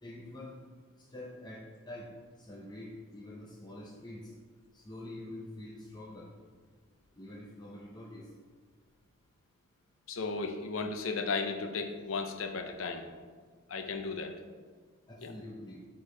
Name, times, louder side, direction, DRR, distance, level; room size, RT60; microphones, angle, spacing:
voice 1, 0.0-0.6 1.1-2.1 2.4-4.3 4.7-6.3 7.2-8.3 15.1-15.8, left 1 dB, 20° left, -3 dB, 0.5 m, -46 dB
voice 2, 10.1-13.1 13.7-14.4 15.2-15.3, left 4 dB, 80° left, 6 dB, 0.6 m, -35 dB
4.9 x 4.5 x 5.4 m, 1.5 s
head